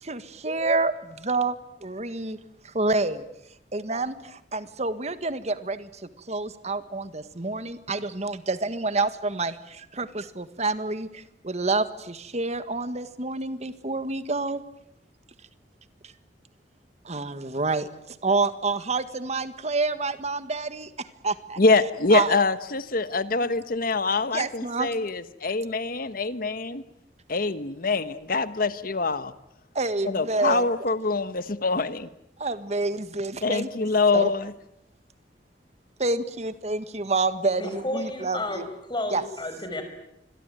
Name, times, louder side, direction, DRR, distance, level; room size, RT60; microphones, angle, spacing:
voice 1, 0.0-1.5 1.8-2.4 2.6-3.2 3.7-14.6 17.0-21.6 22.1-22.4 23.4-23.5 24.3-24.9 29.7-30.6 32.4-33.9 34.1-34.3 36.0-38.6 39.1-39.2, right 3 dB, 40° right, 12 dB, 1.7 m, -28 dB
voice 2, 21.6-26.8 27.3-29.3 30.0-32.1 33.4-34.5, left 3 dB, 55° left, 13 dB, 1.3 m, -24 dB
voice 3, 37.6-38.6 38.9-39.8, left 1 dB, 25° left, 7 dB, 5.7 m, -31 dB
27.0 x 22.5 x 9.2 m, 0.81 s
head